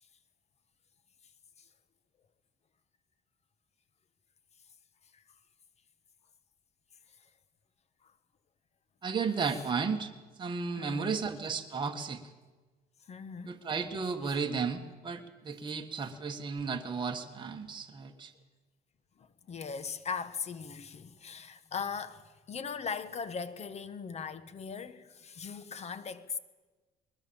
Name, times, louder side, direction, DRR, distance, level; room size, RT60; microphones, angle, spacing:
voice 1, 9.0-10.1 10.4-12.2 13.4-18.3, right 5 dB, 30° right, 1.7 m, -34 dB
voice 2, 10.8-11.1 13.1-13.6 14.2-14.4 19.2-26.4, left 6 dB, 40° left, 1.3 m, -39 dB
21.0 x 20.5 x 7.2 m
cardioid pair, 110°, 17 cm